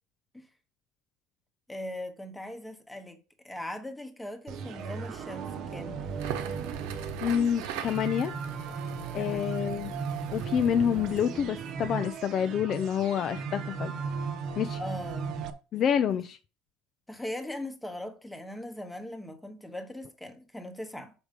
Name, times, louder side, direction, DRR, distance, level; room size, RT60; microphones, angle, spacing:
voice 1, 1.7-3.2 3.4-6.0 9.2-9.7 14.8-15.4 16.1-16.2 17.1-21.1, left 1 dB, 5° left, 1.0 m, -40 dB
sound 1, 4.5-15.5, right 5 dB, 45° right, 0.9 m, -36 dB
Crackle, 6.1-11.3, right 10 dB, 75° right, 1.1 m, -42 dB
voice 2, 7.2-8.3 9.1-9.9 10.3-13.9 14.6-14.8 15.7-16.4, left 8 dB, 35° left, 0.4 m, -27 dB
6.5 x 5.0 x 5.1 m
cardioid pair, 165°, 0 cm